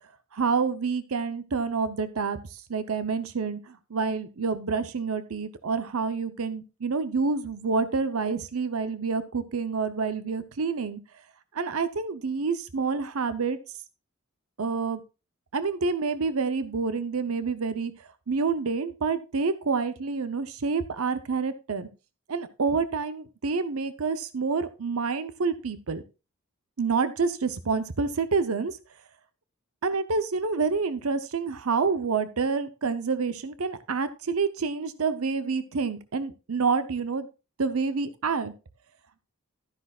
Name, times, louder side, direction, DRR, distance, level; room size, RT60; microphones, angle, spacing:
voice 1, 0.3-11.0 11.5-13.6 14.6-15.0 15.5-17.9 18.3-21.9 22.3-26.0 26.8-28.8 29.8-37.3 37.6-38.5, right 4 dB, 70° right, 12 dB, 0.7 m, -28 dB
12.5 x 10.0 x 2.4 m, 0.30 s
head